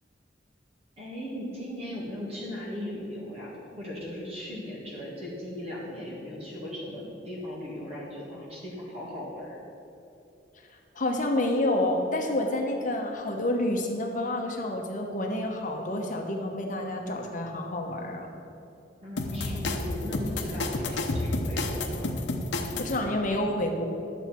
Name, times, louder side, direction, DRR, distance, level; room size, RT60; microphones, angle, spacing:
voice 1, 1.0-9.6 19.0-22.1, left 1 dB, 35° right, -6 dB, 1.9 m, -38 dB
voice 2, 10.9-18.3 22.8-23.9, left 1 dB, 45° left, 2 dB, 1.1 m, -28 dB
sound 1, 19.2-23.0, left 2 dB, 75° left, 0.8 m, -30 dB
11.0 x 7.2 x 4.4 m, 2.8 s
head